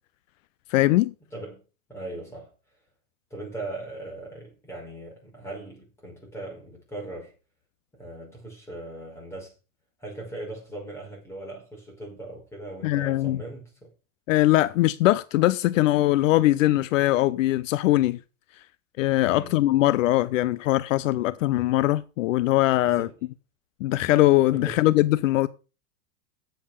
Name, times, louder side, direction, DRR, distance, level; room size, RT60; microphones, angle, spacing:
voice 1, 0.7-1.1 12.8-13.4 14.3-18.2 19.0-23.1 23.8-25.5, left 16 dB, 70° left, 0.6 m, -21 dB
voice 2, 1.3-1.6 1.9-2.5 3.3-7.3 8.0-9.5 10.0-13.9 19.2-19.6 22.9-23.2 24.5-24.9, right 2 dB, 5° left, 5.3 m, -39 dB
8.5 x 7.9 x 6.8 m
supercardioid pair, 165°, 40 cm